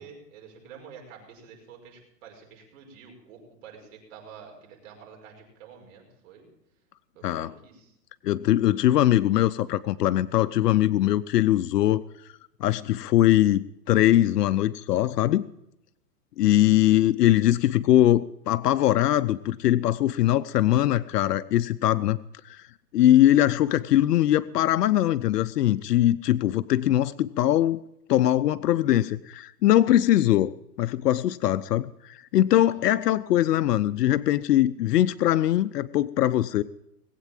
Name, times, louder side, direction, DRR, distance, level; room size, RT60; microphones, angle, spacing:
voice 1, 0.0-6.5 7.1-8.0 32.6-33.0, right 6 dB, 50° right, 1 dB, 5.6 m, -48 dB
voice 2, 8.2-12.0 12.6-15.4 16.4-22.2 22.4-22.6 22.9-27.8 28.1-30.5 30.8-36.6, left 13 dB, 75° left, 14 dB, 0.7 m, -21 dB
19.5 x 8.3 x 7.5 m, 0.80 s
hypercardioid pair, 155°, 48 cm